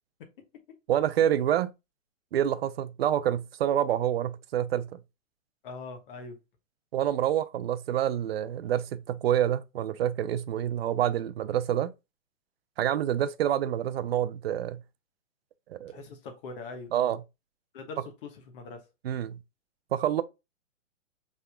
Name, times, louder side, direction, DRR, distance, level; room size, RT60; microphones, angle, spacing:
voice 1, 0.9-1.7 2.3-4.9 6.9-11.9 12.8-14.8 15.7-15.9 16.9-17.2 19.0-19.4 19.9-20.2, right 10 dB, 50° right, 0.5 m, -27 dB
voice 2, 5.6-6.4 15.9-16.9 17.7-18.8, left 4 dB, 40° left, 1.3 m, -42 dB
5.5 x 3.6 x 2.2 m
hypercardioid pair, 150°, 39 cm